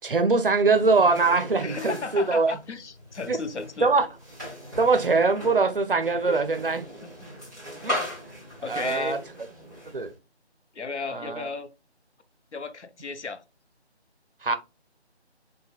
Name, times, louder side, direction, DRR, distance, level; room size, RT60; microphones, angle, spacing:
voice 1, 0.0-2.5 3.3-3.4 3.8-4.1 4.8-6.9 7.8-8.0 8.7-9.2 9.9-10.1 11.1-11.5 14.4-14.6, right 3 dB, 55° right, 0.4 m, -22 dB
sound 1, 0.7-10.2, left 1 dB, 5° left, 1.2 m, -39 dB
voice 2, 1.6-3.9 6.2-6.4 8.6-9.2 10.7-11.7 12.5-13.4, left 4 dB, 85° left, 0.6 m, -34 dB
4.9 x 2.1 x 2.4 m
figure-of-eight pair, 160°, 34 cm